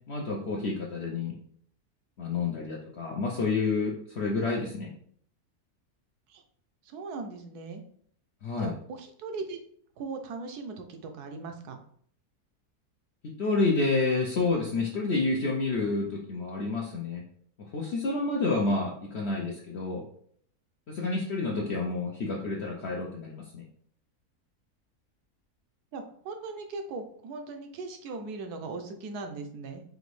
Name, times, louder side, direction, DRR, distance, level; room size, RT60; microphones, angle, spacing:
voice 1, 0.1-1.3 2.2-4.9 8.4-8.7 13.4-17.2 17.7-20.0 20.9-23.6, left 3 dB, 60° left, -1 dB, 0.7 m, -29 dB
voice 2, 6.8-7.8 8.6-9.6 10.0-11.8 18.7-18.8 25.9-29.8, right 3 dB, 80° right, 5 dB, 1.2 m, -39 dB
4.9 x 2.6 x 3.1 m, 0.62 s
omnidirectional pair, 1.6 m